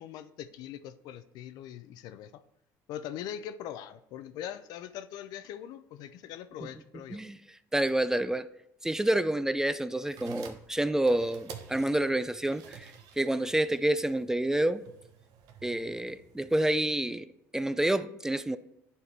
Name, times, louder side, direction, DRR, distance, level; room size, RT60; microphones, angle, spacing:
voice 1, 0.0-2.4 2.9-7.2, left 10 dB, 75° left, 0.5 m, -42 dB
voice 2, 7.1-8.5 8.8-14.8 15.6-17.3 17.5-18.6, right 1 dB, 10° right, 0.3 m, -28 dB
sound 1, 10.0-16.8, right 7 dB, 75° right, 0.9 m, -51 dB
9.8 x 4.5 x 3.3 m
cardioid pair, 100°, 7 cm